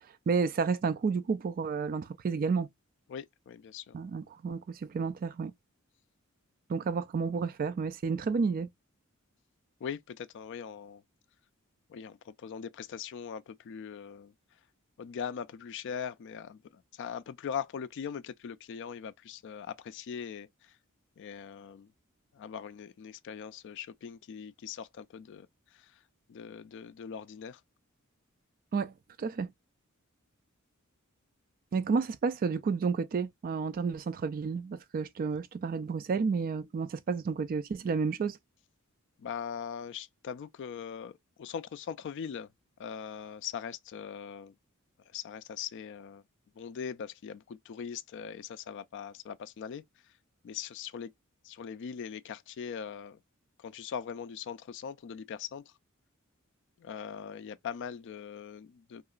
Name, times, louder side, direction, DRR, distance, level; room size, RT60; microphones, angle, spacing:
voice 1, 0.3-2.7 3.9-5.5 6.7-8.7 28.7-29.5 31.7-38.4, right 5 dB, 40° right, 0.3 m, -31 dB
voice 2, 3.1-4.1 9.8-11.0 11.9-14.3 15.0-20.8 21.2-21.9 22.3-26.0 26.3-27.6 39.2-42.5 42.8-44.6 45.0-46.2 46.6-50.1 50.4-51.1 51.4-53.2 53.6-55.7 56.8-59.0, left 7 dB, 60° left, 0.3 m, -41 dB
2.8 x 2.4 x 2.3 m
head